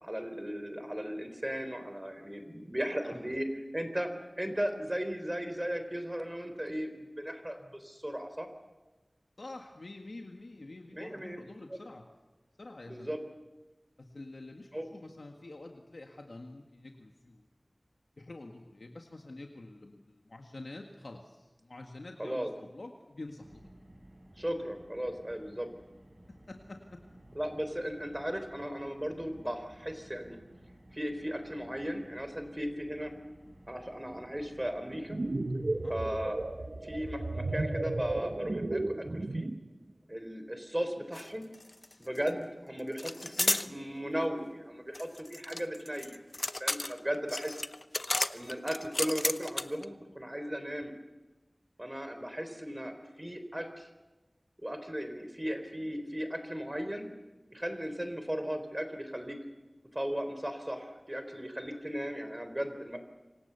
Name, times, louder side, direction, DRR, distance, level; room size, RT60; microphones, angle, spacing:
voice 1, 0.0-3.5 3.7-8.5 10.9-11.4 11.7-11.8 12.9-13.2 14.7-14.9 22.2-22.5 24.4-25.7 27.4-30.4 30.9-33.1 33.7-35.2 35.9-36.4 36.8-39.5 40.1-41.4 42.0-47.6 48.3-50.9 51.8-53.9 54.6-57.1 57.5-59.4 59.9-63.0, equal, 20° right, 8 dB, 3.8 m, -36 dB
voice 2, 9.4-12.0 12.6-13.1 14.0-17.5 18.2-23.7 26.5-27.0 35.8-35.9, left 2 dB, 85° left, 2 dB, 1.9 m, -47 dB
Car, 23.4-38.6, right 1 dB, 50° right, 7.9 m, -56 dB
sound 1, 34.9-39.7, right 2 dB, 70° right, 1.2 m, -34 dB
sound 2, 41.1-41.3 41.5-42.3 43.0-43.7 44.9-49.9, left 2 dB, 50° left, 0.9 m, -33 dB
27.5 x 25.0 x 7.0 m, 1.1 s
wide cardioid pair, 50°, 0 cm